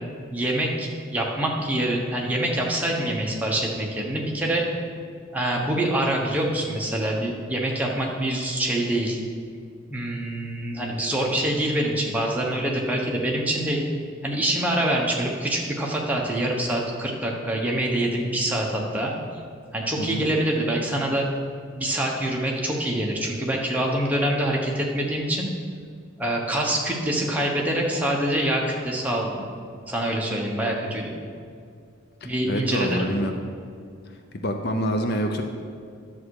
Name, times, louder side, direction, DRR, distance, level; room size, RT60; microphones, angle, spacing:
voice 1, 0.3-4.7 5.3-9.2 9.9-13.8 14.2-19.1 19.7-21.3 21.8-25.5 26.2-29.4 29.9-31.1 32.2-33.1, right 1 dB, 5° right, -2 dB, 1.1 m, -25 dB
voice 2, 32.2-33.4 34.3-35.4, equal, 50° left, 5 dB, 0.7 m, -26 dB
10.5 x 7.3 x 4.8 m, 2.3 s
head